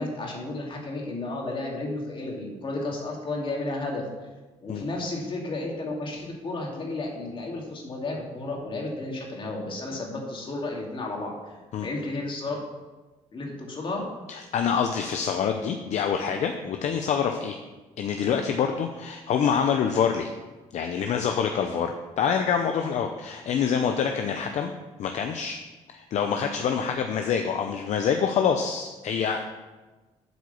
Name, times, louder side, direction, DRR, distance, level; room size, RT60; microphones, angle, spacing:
voice 1, 0.0-4.0 4.6-11.5 11.8-12.6 13.3-14.1, left 2 dB, 40° left, -1 dB, 2.5 m, -32 dB
voice 2, 14.3-17.6 18.0-20.3 20.7-24.7 25.0-25.6 25.9-29.5, left 7 dB, 65° left, 5 dB, 0.7 m, -26 dB
8.1 x 4.8 x 7.0 m, 1.2 s
supercardioid pair, 75°, 13 cm